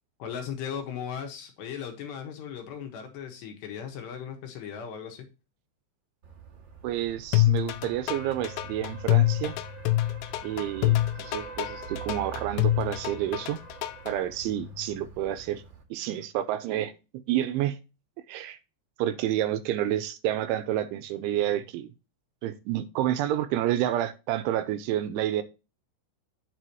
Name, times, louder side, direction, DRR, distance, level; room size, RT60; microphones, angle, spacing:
voice 1, 0.2-5.3, left 8 dB, 70° left, 3.1 m, -37 dB
sound 1, 6.2-15.8, right 4 dB, 55° right, 1.3 m, -44 dB
voice 2, 6.8-9.5 10.4-13.6 14.1-15.6 15.9-16.9 17.3-17.8 18.3-18.6 19.0-21.9 22.4-25.4, right 12 dB, 80° right, 3.0 m, -29 dB
sound 2, 7.3-14.1, left 16 dB, 85° left, 2.6 m, -25 dB
9.1 x 6.9 x 2.9 m
omnidirectional pair, 5.7 m